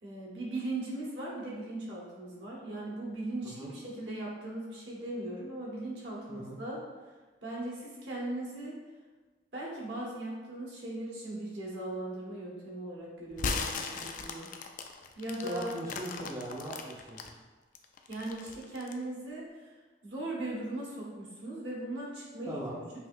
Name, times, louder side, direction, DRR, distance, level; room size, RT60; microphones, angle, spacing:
voice 1, 0.0-6.8 7.4-8.8 9.5-14.5 15.2-15.8 18.1-19.7 20.0-22.6, right 1 dB, 75° right, -5 dB, 1.3 m, -38 dB
sound 1, 13.3-17.3 17.7-19.0, left 4 dB, 45° left, 0.3 m, -37 dB
voice 2, 15.4-17.2 22.5-22.8, right 1 dB, 20° right, -5 dB, 0.5 m, -39 dB
5.5 x 2.7 x 2.6 m, 1.3 s
head